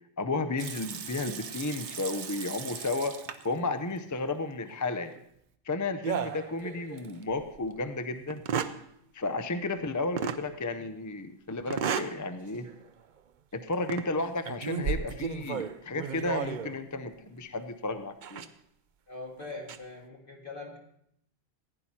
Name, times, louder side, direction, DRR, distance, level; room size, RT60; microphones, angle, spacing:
voice 1, 0.2-3.2 3.4-5.1 5.7-8.4 9.1-12.7 13.5-18.5, left 3 dB, 20° left, 9 dB, 0.5 m, -33 dB
Water tap faucet / Sink (filling or washing) / Liquid, 0.6-3.6 3.9-4.0 4.6-5.2, right 7 dB, 70° right, 1.1 m, -41 dB
sound 1, 6.0-7.1 7.5-7.6 8.3-8.8 10.2-10.4 11.7-12.2 12.6-12.8 13.7-14.1 14.5-16.8 18.2-18.5 19.4-19.8, right 7 dB, 50° right, 0.6 m, -33 dB
voice 2, 19.1-20.8, left 3 dB, 45° left, -1 dB, 2.3 m, -42 dB
15.5 x 9.7 x 4.3 m, 0.72 s
omnidirectional pair, 1.2 m